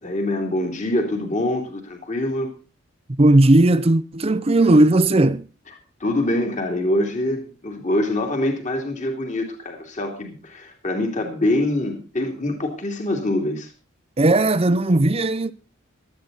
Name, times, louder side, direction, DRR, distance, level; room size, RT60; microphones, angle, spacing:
voice 1, 0.0-2.5 6.0-13.7, left 1 dB, 40° left, 2.9 m, -24 dB
voice 2, 3.2-5.5 14.2-15.5, right 2 dB, 30° right, 0.6 m, -16 dB
17.0 x 12.5 x 4.0 m
head